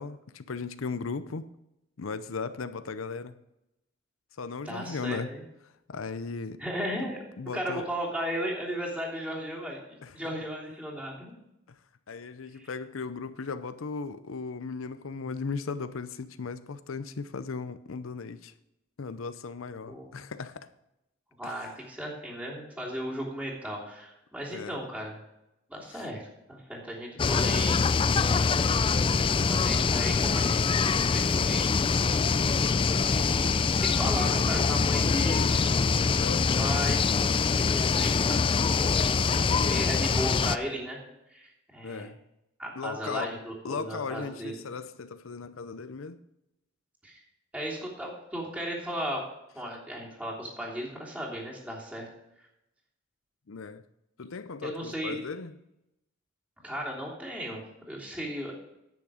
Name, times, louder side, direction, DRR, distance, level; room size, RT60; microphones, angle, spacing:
voice 1, 0.0-1.4 2.0-3.3 4.4-5.3 5.9-6.6 7.4-7.9 10.0-10.1 12.1-18.5 19.0-20.7 21.4-21.7 24.5-24.8 25.9-26.1 36.1-36.7 41.8-42.2 42.8-43.3 43.6-46.2 53.5-53.8 54.2-55.5, left 4 dB, 90° left, 0.6 m, -37 dB
voice 2, 4.6-5.4 6.6-7.2 7.5-11.3 12.5-12.7 19.9-20.2 21.4-25.2 25.7-27.8 28.8-31.9 32.9-35.6 36.6-37.0 37.5-38.7 39.6-41.0 41.3-42.1 42.6-44.6 47.0-47.2 47.5-49.2 49.5-52.1 54.6-55.2 56.6-57.6 57.9-58.5, equal, 5° right, 3.1 m, -36 dB
sound 1, 27.2-40.6, left 5 dB, 25° left, 0.3 m, -24 dB
10.5 x 8.7 x 5.0 m
head